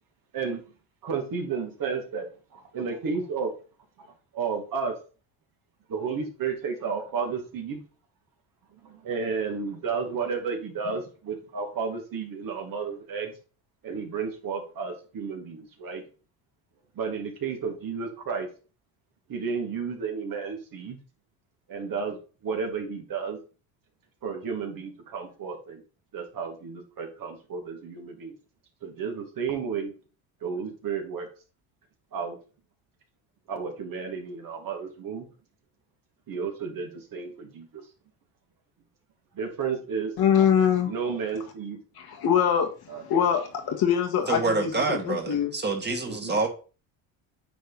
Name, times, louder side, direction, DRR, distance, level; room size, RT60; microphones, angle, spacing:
voice 1, 1.0-3.5 4.3-5.0 5.9-7.8 8.8-13.3 13.8-16.0 17.0-18.5 19.3-21.0 21.7-22.2 22.4-23.4 24.2-25.8 26.1-28.3 28.8-29.9 30.4-31.3 32.1-32.4 33.5-35.3 36.3-37.8 39.3-40.1 40.9-41.8 42.9-43.0 46.1-46.4, right 5 dB, 55° right, 2 dB, 2.4 m, -32 dB
voice 2, 40.2-40.9 41.9-45.5, left 8 dB, 60° left, 3 dB, 1.8 m, -24 dB
voice 3, 44.3-46.5, right 3 dB, 25° right, 2 dB, 2.2 m, -27 dB
9.2 x 3.6 x 4.1 m, 0.36 s
supercardioid pair, 85°, 41 cm